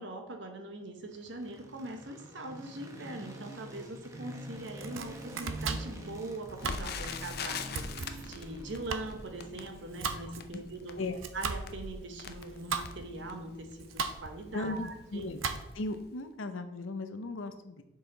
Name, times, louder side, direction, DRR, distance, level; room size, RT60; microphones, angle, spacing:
voice 1, 0.0-11.0 11.3-15.3, right 2 dB, 65° right, 4 dB, 1.1 m, -42 dB
sound 1, 1.0-15.1, right 1 dB, 15° right, 0.9 m, -48 dB
Domestic sounds home sounds, 4.6-16.0, right 5 dB, 85° right, 0.6 m, -39 dB
Crackle, 6.6-13.6 14.2-14.3 14.6-14.8 15.4-15.7 15.9-16.0, left 5 dB, 50° left, 0.5 m, -42 dB
voice 2, 14.5-15.4 15.7-17.8, left 2 dB, 85° left, 9 dB, 0.7 m, -37 dB
6.9 x 5.6 x 4.0 m, 0.89 s
head